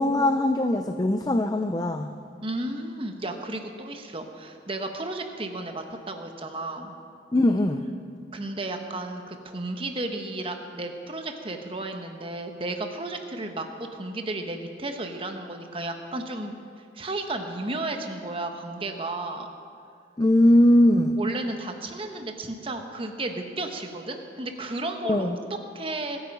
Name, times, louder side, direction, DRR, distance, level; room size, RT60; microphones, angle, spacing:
voice 1, 0.0-2.1 7.3-7.9 20.2-21.2 25.0-25.4, left 1 dB, 20° left, 7 dB, 0.4 m, -20 dB
voice 2, 2.4-6.9 8.3-16.5 16.9-19.5 21.2-25.4 25.7-26.2, right 2 dB, 30° right, 5 dB, 1.1 m, -33 dB
23.0 x 9.0 x 5.4 m, 2.3 s
head